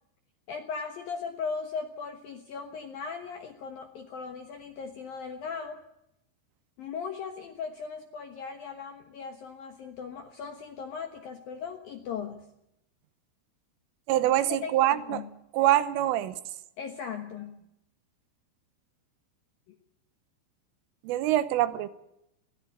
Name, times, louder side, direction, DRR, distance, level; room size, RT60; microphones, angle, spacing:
voice 1, 0.5-5.8 6.8-12.5 14.5-15.3 16.8-17.6 19.7-19.8, left 5 dB, 70° left, 6 dB, 2.2 m, -38 dB
voice 2, 14.1-15.2 15.5-16.4 21.0-21.9, right 14 dB, 80° right, 14 dB, 3.4 m, -24 dB
21.5 x 17.0 x 8.7 m, 0.84 s
omnidirectional pair, 6.0 m